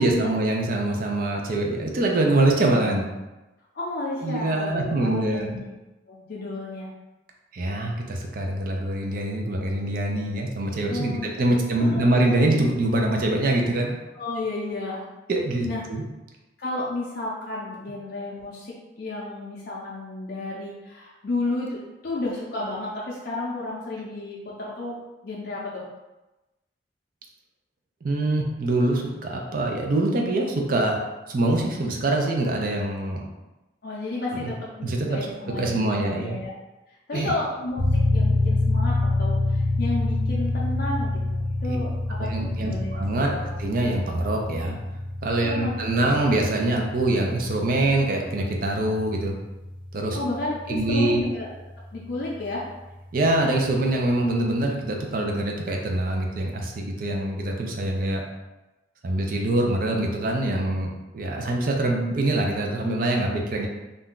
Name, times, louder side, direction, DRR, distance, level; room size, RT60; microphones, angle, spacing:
voice 1, 0.0-3.1 4.2-5.5 7.5-14.0 15.3-16.0 28.0-31.0 31.3-33.2 34.3-34.5 34.8-35.3 35.6-36.4 37.1-37.3 41.7-41.8 42.2-43.3 43.6-44.8 45.2-49.4 49.9-50.2 50.7-51.2 53.1-58.2 59.0-63.7, right 2 dB, 50° right, 1 dB, 0.5 m, -24 dB
voice 2, 3.7-5.7 6.1-6.9 10.9-12.0 14.1-15.0 15.6-15.8 16.6-24.9 25.2-25.8 33.8-36.5 37.1-43.0 43.3-43.6 45.4-46.1 50.1-51.5 51.9-52.7, left 2 dB, 55° left, -6 dB, 0.5 m, -32 dB
sound 1, 37.8-52.2, left 2 dB, 10° left, 0.7 m, -27 dB
2.6 x 2.2 x 3.7 m, 1.1 s
head